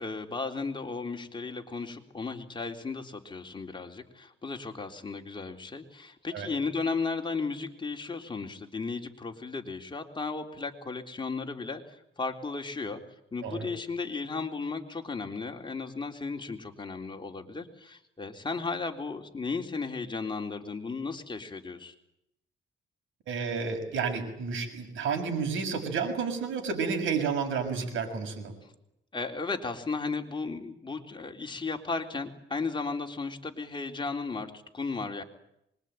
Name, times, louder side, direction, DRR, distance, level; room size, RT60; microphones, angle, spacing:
voice 1, 0.0-13.0 13.3-21.9 28.6-28.7 29.1-35.2, left 4 dB, 25° left, 3 dB, 3.7 m, -35 dB
voice 2, 23.3-28.5, right 5 dB, 80° right, 5 dB, 6.5 m, -31 dB
25.0 x 22.5 x 9.3 m, 0.82 s
cardioid pair, 90°, 20 cm